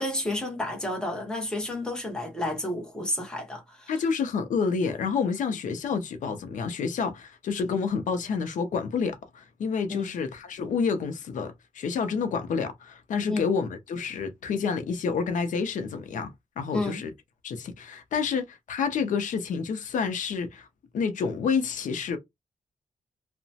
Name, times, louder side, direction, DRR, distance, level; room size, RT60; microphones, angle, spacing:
voice 1, 0.0-3.9 9.9-10.1 13.3-13.5 16.7-17.0, left 1 dB, 5° left, 0.9 m, -31 dB
voice 2, 3.9-17.1 17.4-20.7 20.9-22.2, left 5 dB, 90° left, 0.6 m, -29 dB
2.9 x 2.1 x 2.7 m
wide cardioid pair, 170°, 13 cm